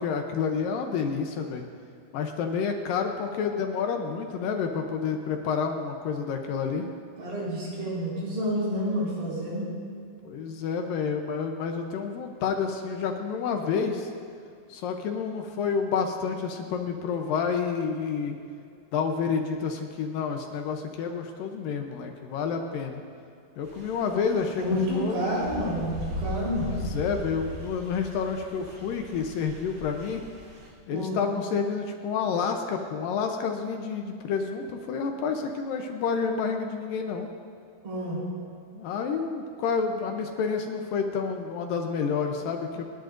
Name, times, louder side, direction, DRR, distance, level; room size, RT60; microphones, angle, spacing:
voice 1, 0.0-1.6 2.1-6.9 10.2-14.1 14.7-18.4 18.9-23.0 23.6-25.3 26.7-30.2 30.9-37.3 38.7-42.8, left 5 dB, 75° left, 4 dB, 2.2 m, -29 dB
voice 2, 7.2-9.7 24.6-26.7 30.9-31.2 37.8-38.2, equal, 80° right, -6 dB, 6.3 m, -29 dB
sound 1, 23.7-30.7, equal, 45° right, 2.8 m, -39 dB
29.0 x 10.5 x 2.6 m, 2.3 s
omnidirectional pair, 4.7 m